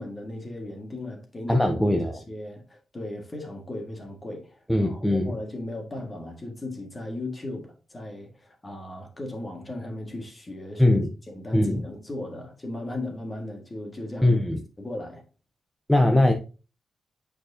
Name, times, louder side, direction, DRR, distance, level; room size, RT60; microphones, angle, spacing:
voice 1, 0.0-11.0 11.3-14.4 14.8-15.2, left 1 dB, 20° left, 1.8 m, -37 dB
voice 2, 1.5-2.2 4.7-5.4 10.8-11.1 11.5-11.8 14.2-14.6 15.9-16.3, left 1 dB, 5° left, 0.8 m, -21 dB
9.1 x 4.6 x 2.8 m
cardioid pair, 125°, 0 cm